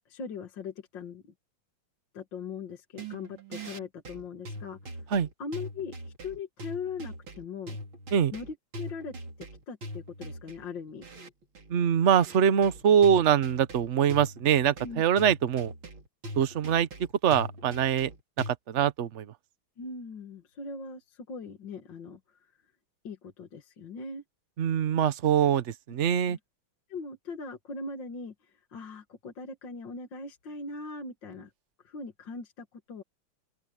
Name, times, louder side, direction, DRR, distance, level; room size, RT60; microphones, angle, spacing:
voice 1, 0.1-1.3 2.1-4.8 5.4-7.8 8.3-11.0 14.8-15.0 19.8-22.2 23.0-24.2 26.3-26.4 26.9-31.5 31.8-33.0, left 4 dB, 60° left, 2.5 m, -40 dB
sound 1, 2.9-18.5, equal, 70° right, 4.3 m, -41 dB
voice 2, 11.7-15.7 16.4-16.9 17.2-18.1 18.5-19.3 24.6-26.4, right 8 dB, 50° right, 0.9 m, -24 dB
open air
omnidirectional pair, 2.3 m